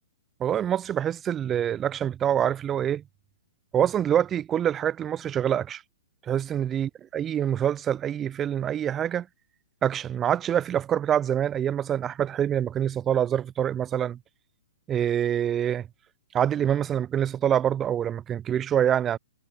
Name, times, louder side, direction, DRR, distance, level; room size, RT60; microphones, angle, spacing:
voice 1, 0.4-3.0 3.7-5.8 6.3-9.3 9.8-14.2 14.9-15.9 16.3-19.2, right 10 dB, 20° right, 0.3 m, -25 dB
figure-of-eight pair, 115°, 0 cm